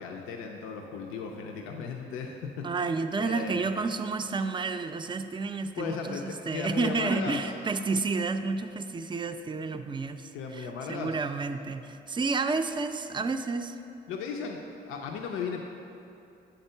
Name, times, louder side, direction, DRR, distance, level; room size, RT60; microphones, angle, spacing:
voice 1, 0.0-2.7 3.2-3.7 5.8-7.4 10.3-11.2 14.1-15.6, left 5 dB, 90° left, 2 dB, 0.5 m, -36 dB
voice 2, 2.6-13.8, right 4 dB, 25° right, 8 dB, 0.4 m, -30 dB
7.9 x 3.6 x 5.5 m, 2.8 s
cardioid pair, 70°, 21 cm